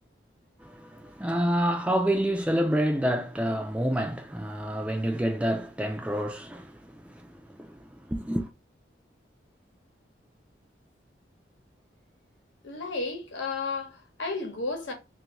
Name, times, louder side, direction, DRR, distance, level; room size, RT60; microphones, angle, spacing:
voice 1, 0.6-8.5, equal, 5° right, 0.3 m, -28 dB
voice 2, 12.6-14.9, left 3 dB, 85° left, 1.0 m, -33 dB
2.7 x 2.5 x 2.9 m
head